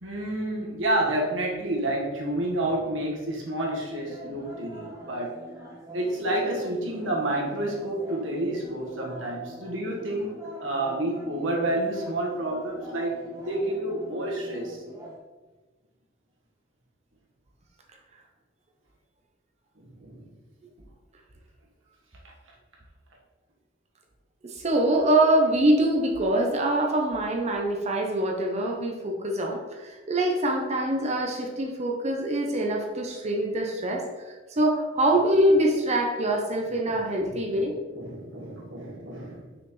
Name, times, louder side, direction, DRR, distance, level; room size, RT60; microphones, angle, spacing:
voice 1, 0.0-5.4 5.9-13.2 13.5-14.8 19.8-20.3 36.8-37.4 37.9-39.5, right 1 dB, 85° right, -1 dB, 1.5 m, -29 dB
sound 1, 3.9-15.2, right 1 dB, 15° right, 1.5 m, -43 dB
voice 2, 24.4-34.1 34.5-37.7, right 1 dB, 35° right, 2 dB, 0.7 m, -24 dB
6.0 x 5.6 x 3.1 m, 1.3 s
head